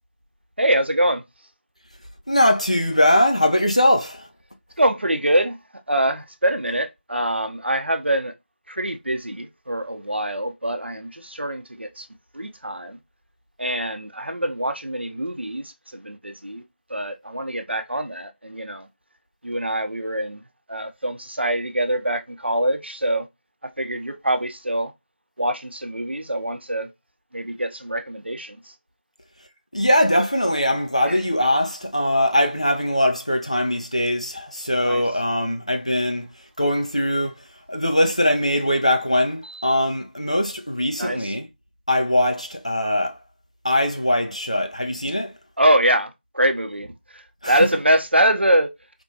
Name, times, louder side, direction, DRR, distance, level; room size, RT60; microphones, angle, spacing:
voice 1, 0.6-1.2 4.8-5.6 5.9-8.3 8.7-12.1 12.3-13.0 13.6-16.6 16.9-18.9 19.4-20.4 20.7-23.3 23.8-24.9 25.4-26.9 27.3-28.6 31.1-31.2 34.8-35.0 39.4-39.7 41.0-41.3 45.6-46.1 46.3-48.7, right 1 dB, 75° right, 0.7 m, -24 dB
voice 2, 2.3-4.3 29.7-36.3 36.6-37.4 37.7-41.5 41.9-43.2 43.6-45.3 47.4-47.7, left 1 dB, 35° left, 0.5 m, -21 dB
4.2 x 2.2 x 2.7 m
figure-of-eight pair, 180°, 6 cm